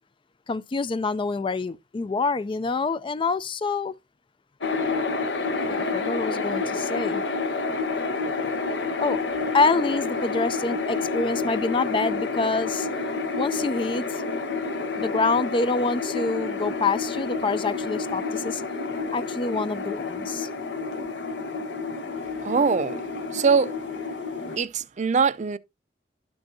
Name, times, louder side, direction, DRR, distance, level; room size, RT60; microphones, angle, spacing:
voice 1, 0.5-4.0 5.5-7.2 9.0-9.2 9.5-12.9 13.3-14.2 15.0-18.6 19.1-20.5, left 3 dB, 30° left, 0.4 m, -26 dB
sound 1, 4.6-24.6, left 4 dB, 75° left, 1.1 m, -29 dB
voice 2, 22.4-23.0 23.3-23.7 24.6-25.6, right 5 dB, 40° right, 0.5 m, -22 dB
12.0 x 6.2 x 2.6 m
head